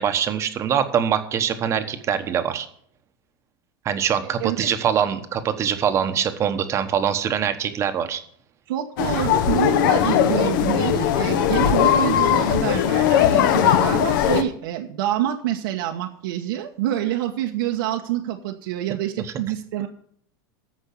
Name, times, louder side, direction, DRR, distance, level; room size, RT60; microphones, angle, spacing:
voice 1, 0.0-2.7 3.8-8.2 19.2-19.3, right 8 dB, 25° right, 9 dB, 1.1 m, -23 dB
voice 2, 4.4-4.7 8.7-19.9, right 11 dB, 70° right, 2 dB, 1.2 m, -27 dB
sound 1, 9.0-14.4, left 9 dB, 65° left, 1.3 m, -19 dB
14.0 x 5.3 x 8.4 m, 0.62 s
supercardioid pair, 155°, 12 cm